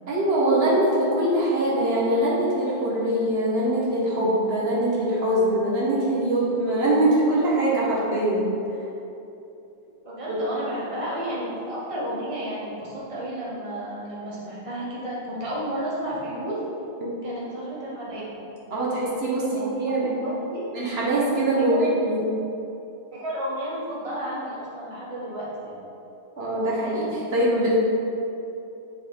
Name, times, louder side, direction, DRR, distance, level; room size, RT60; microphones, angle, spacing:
voice 1, 0.1-8.5 10.3-10.4 17.0-17.1 18.7-20.1 20.7-22.2 26.4-27.7, right 1 dB, 70° right, -6 dB, 1.6 m, -23 dB
voice 2, 10.0-16.6 17.2-18.4 19.4-20.7 21.6-21.8 23.1-25.8, right 1 dB, 30° right, -7 dB, 1.4 m, -32 dB
9.5 x 3.8 x 4.0 m, 2.8 s
omnidirectional pair, 1.1 m